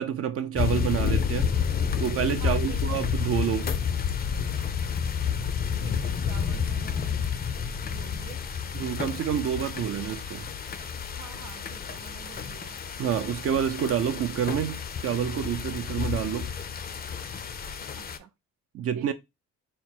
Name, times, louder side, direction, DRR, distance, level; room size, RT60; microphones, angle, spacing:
voice 1, 0.0-1.6 2.0-3.7 8.7-10.5 13.0-16.5 18.7-19.1, right 9 dB, 50° right, 0.5 m, -28 dB
sound 1, 0.6-18.2, left 7 dB, 30° left, 0.5 m, -30 dB
voice 2, 2.4-3.0 5.8-7.3 7.8-8.4 11.2-12.8 17.9-18.3 18.9-19.1, right 10 dB, 85° right, 0.7 m, -47 dB
4.2 x 2.0 x 4.3 m
cardioid pair, 90°, 30 cm